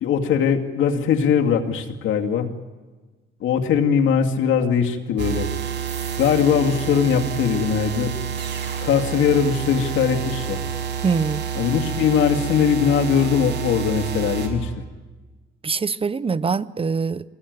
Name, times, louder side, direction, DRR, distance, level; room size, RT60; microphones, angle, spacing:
voice 1, 0.0-2.5 3.4-5.5 6.2-8.2 8.8-10.6 11.6-14.7, left 7 dB, 80° left, 2.3 m, -20 dB
sound 1, 5.2-14.5, right 8 dB, 60° right, 5.7 m, -28 dB
voice 2, 11.0-11.4 15.6-17.2, right 5 dB, 30° right, 0.7 m, -23 dB
26.0 x 20.0 x 9.5 m
cardioid pair, 90°, 20 cm